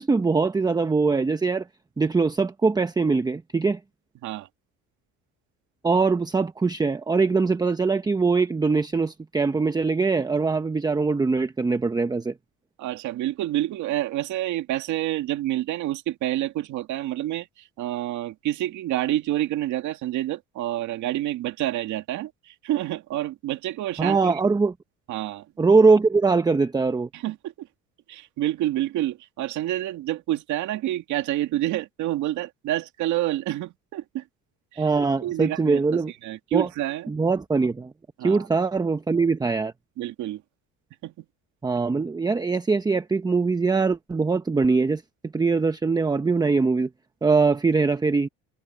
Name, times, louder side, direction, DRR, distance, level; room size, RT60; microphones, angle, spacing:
voice 1, 0.0-1.7 2.0-3.8 5.8-12.3 24.0-24.7 25.6-27.1 34.8-36.1 36.5-36.7 37.1-37.9 38.2-39.7 41.6-45.0 45.3-46.9 47.2-48.3, right 4 dB, 15° right, 0.8 m, -22 dB
voice 2, 12.8-24.4 25.1-25.5 27.1-27.7 28.1-34.2 34.7-34.9 35.2-37.1 38.2-38.5 40.0-40.4 41.0-41.2, right 14 dB, 70° right, 2.3 m, -28 dB
cardioid pair, 130°, 31 cm